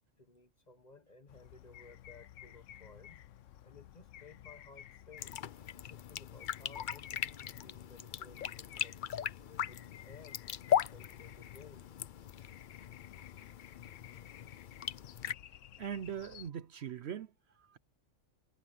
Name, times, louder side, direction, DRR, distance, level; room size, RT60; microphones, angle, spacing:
voice 1, 0.2-3.2 3.6-5.3 5.8-10.4 10.9-11.9, left 4 dB, 35° left, 1.4 m, -58 dB
sound 1, 1.3-16.5, left 11 dB, 75° left, 1.0 m, -55 dB
sound 2, 5.2-15.3, left 9 dB, 55° left, 0.6 m, -39 dB
voice 2, 15.8-17.8, right 8 dB, 60° right, 0.9 m, -41 dB
omnidirectional pair, 1.3 m